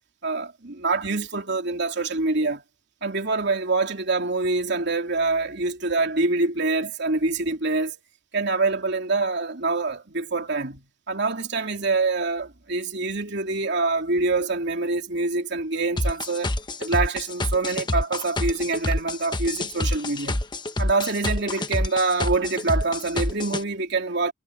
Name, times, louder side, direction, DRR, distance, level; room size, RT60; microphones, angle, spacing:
voice 1, 0.2-2.6 3.0-8.0 8.3-16.5 16.8-20.4 20.8-24.3, right 3 dB, 60° right, 3.1 m, -25 dB
sound 1, 16.0-23.6, left 1 dB, 25° left, 1.1 m, -27 dB
head